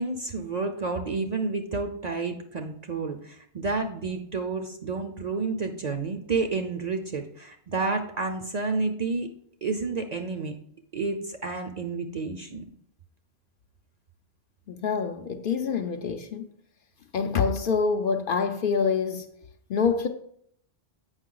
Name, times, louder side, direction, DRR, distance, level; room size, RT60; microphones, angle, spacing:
voice 1, 0.0-9.3 9.6-10.6 10.9-12.6, right 3 dB, 45° right, 0.6 m, -30 dB
voice 2, 14.7-16.5 17.1-19.3 19.7-20.1, left 5 dB, 60° left, 0.7 m, -26 dB
8.0 x 5.5 x 3.8 m
omnidirectional pair, 1.2 m